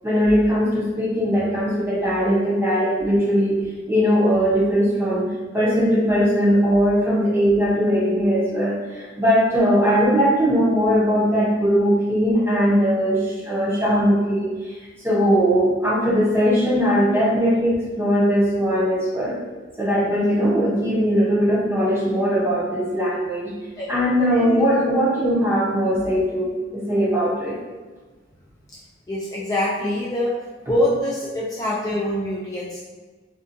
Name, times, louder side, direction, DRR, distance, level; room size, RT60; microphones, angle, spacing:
voice 1, 0.0-3.6 3.9-5.3 5.5-14.5 15.0-19.4 19.8-23.5 23.9-27.6, equal, 15° right, -6 dB, 0.7 m, -20 dB
voice 2, 24.3-24.8 29.1-30.4 30.6-32.8, left 1 dB, 20° left, -6 dB, 0.3 m, -25 dB
2.5 x 2.2 x 2.5 m, 1.3 s
head